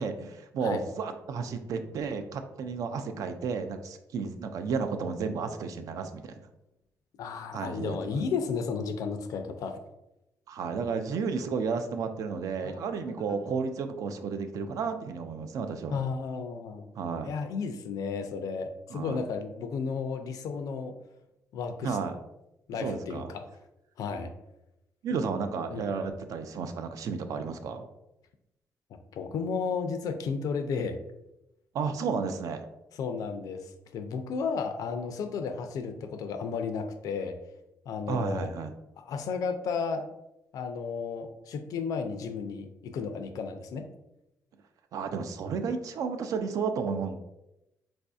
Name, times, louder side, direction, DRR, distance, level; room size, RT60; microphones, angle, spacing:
voice 1, 0.0-6.4 7.5-8.2 10.5-16.0 17.0-17.3 18.9-19.2 21.8-22.2 22.7-23.3 25.0-27.8 31.7-32.7 38.1-38.7 44.9-47.2, right 5 dB, 70° right, 8 dB, 0.4 m, -32 dB
voice 2, 7.2-9.8 12.6-12.8 13.1-13.4 15.9-16.9 17.2-21.0 21.5-22.0 22.7-23.4 24.0-24.3 25.7-25.8 29.1-31.0 33.0-37.4 37.9-38.5 39.0-40.1 40.5-43.9, left 5 dB, 75° left, 7 dB, 0.4 m, -33 dB
4.0 x 2.6 x 2.3 m, 0.89 s
cardioid pair, 130°, 6 cm